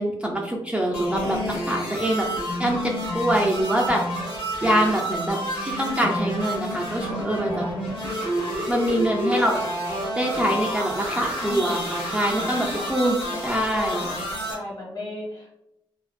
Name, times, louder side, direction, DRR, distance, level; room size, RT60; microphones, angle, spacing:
voice 1, 0.0-4.0 4.6-7.6 8.7-9.6 10.2-13.2 13.4-14.1, right 1 dB, 15° right, -1 dB, 0.3 m, -24 dB
sound 1, 0.9-14.5, equal, 85° left, 0.8 m, -29 dB
voice 2, 3.2-3.5 7.5-7.8 11.4-11.9 12.3-12.9 13.3-13.5 13.8-14.2 14.5-15.5, left 1 dB, 45° left, -4 dB, 1.2 m, -36 dB
2.5 x 2.1 x 2.3 m, 0.85 s
cardioid pair, 80°, 9 cm